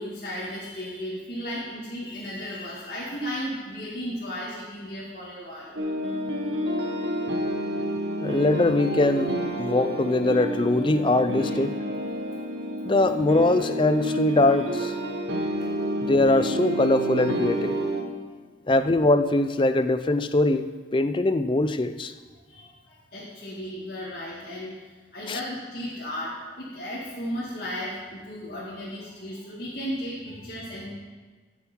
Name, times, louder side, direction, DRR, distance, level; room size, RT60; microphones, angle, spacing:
voice 1, 0.0-5.8 18.3-18.4 22.3-30.9, equal, 55° left, -9 dB, 2.3 m, -35 dB
sound 1, 5.8-18.0, right 1 dB, 85° right, 1.3 m, -29 dB
voice 2, 8.2-9.3 9.6-11.7 12.8-14.9 16.0-17.8 18.7-22.1 25.3-25.4, left 2 dB, 25° left, 10 dB, 0.5 m, -22 dB
sound 2, 9.7-14.5, left 6 dB, 45° right, 2.0 m, -45 dB
15.0 x 7.3 x 4.5 m, 1.4 s
head